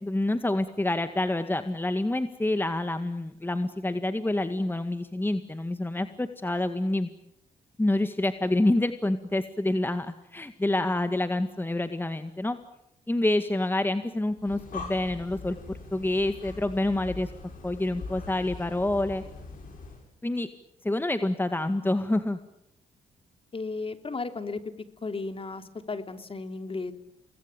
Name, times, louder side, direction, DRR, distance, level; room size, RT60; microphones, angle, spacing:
voice 1, 0.0-7.1 7.8-12.6 13.1-17.3 17.6-19.2 20.2-20.5 20.8-22.4, left 1 dB, 15° left, 9 dB, 1.9 m, -27 dB
Breathing, 14.3-20.1, left 3 dB, 60° left, 7.9 m, -42 dB
voice 2, 23.5-24.6 25.0-26.9, left 3 dB, 35° left, 8 dB, 3.2 m, -34 dB
28.0 x 21.0 x 9.1 m, 0.80 s
supercardioid pair, 65°, 16 cm